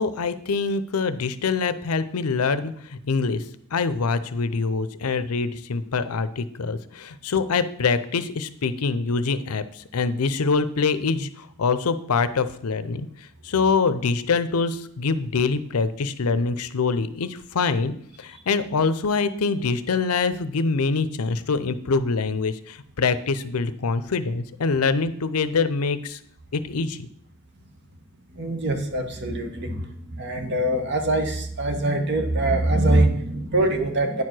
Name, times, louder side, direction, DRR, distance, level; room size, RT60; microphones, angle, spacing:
voice 1, 0.0-3.4 3.7-13.1 13.4-26.2 26.5-27.1, left 4 dB, 85° left, 13 dB, 0.6 m, -24 dB
voice 2, 28.3-34.2, right 1 dB, 50° right, 6 dB, 1.1 m, -23 dB
9.5 x 4.7 x 6.1 m, 0.68 s
head